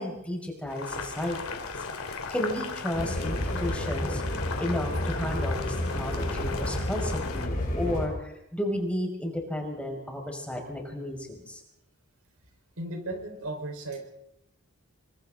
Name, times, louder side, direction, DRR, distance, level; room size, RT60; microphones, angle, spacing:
voice 1, 0.0-1.6 2.1-4.2 4.6-11.6, left 1 dB, 5° left, 0 dB, 5.3 m, -33 dB
Boiling, 0.7-7.5, left 4 dB, 80° left, 2.8 m, -37 dB
sound 1, 2.9-8.1, left 1 dB, 45° left, 6.6 m, -31 dB
voice 2, 12.8-14.1, right 2 dB, 75° right, 4 dB, 4.6 m, -36 dB
29.0 x 23.5 x 3.9 m, 0.85 s
head